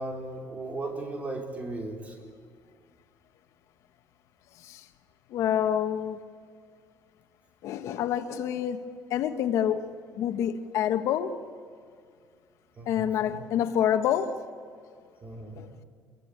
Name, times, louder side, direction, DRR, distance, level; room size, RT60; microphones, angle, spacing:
voice 1, 0.0-2.2 12.8-13.4 15.2-15.6, right 2 dB, 25° right, 4.4 m, -36 dB
voice 2, 4.5-4.9 5.3-6.2 7.6-11.5 12.8-14.5 15.5-15.7, left 9 dB, 75° left, 1.5 m, -28 dB
26.0 x 23.0 x 8.8 m
cardioid pair, 140°, 5 cm